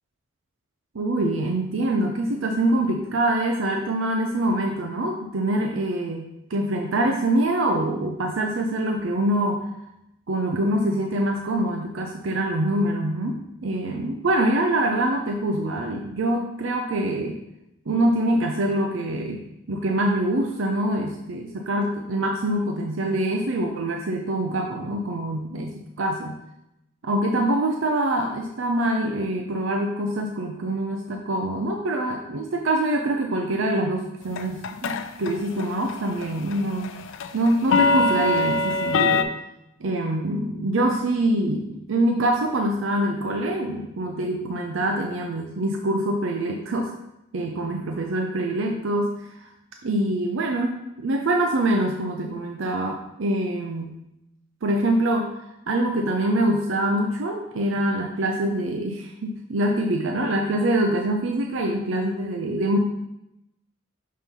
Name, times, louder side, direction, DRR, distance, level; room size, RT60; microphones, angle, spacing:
voice 1, 0.9-9.8 10.3-17.4 17.9-19.4 19.7-26.4 27.0-36.9 37.3-39.3 39.8-46.9 47.3-49.5 49.8-53.9 54.6-62.8, right 1 dB, 75° right, 2 dB, 0.6 m, -25 dB
sound 1, 34.4-35.3 35.6-35.9 36.2-39.2, left 3 dB, 70° left, 0.4 m, -22 dB
5.6 x 3.2 x 5.3 m, 0.85 s
head